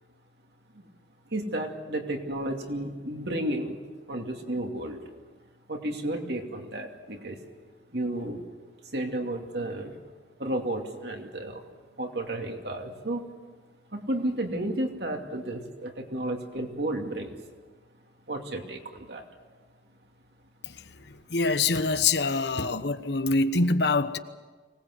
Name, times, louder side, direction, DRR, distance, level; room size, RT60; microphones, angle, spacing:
voice 1, 1.3-3.8 4.1-5.0 5.7-7.4 7.9-8.4 8.9-10.0 10.4-11.6 12.0-13.2 13.9-17.4 18.3-19.2, right 1 dB, 65° right, 2.6 m, -32 dB
voice 2, 21.3-24.2, left 3 dB, 65° left, 1.1 m, -24 dB
24.5 x 19.0 x 8.0 m
head